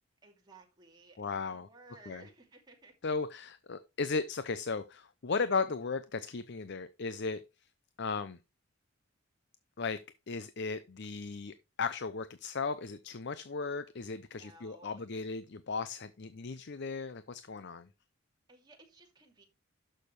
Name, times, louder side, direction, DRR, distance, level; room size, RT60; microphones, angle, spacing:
voice 1, 0.2-2.9 14.4-15.0 18.5-19.4, right 3 dB, 20° right, 2.7 m, -57 dB
voice 2, 1.2-1.7 2.1-2.2 3.0-7.4 8.0-8.4 9.8-17.9, left 4 dB, 55° left, 0.6 m, -36 dB
12.0 x 6.5 x 3.2 m
head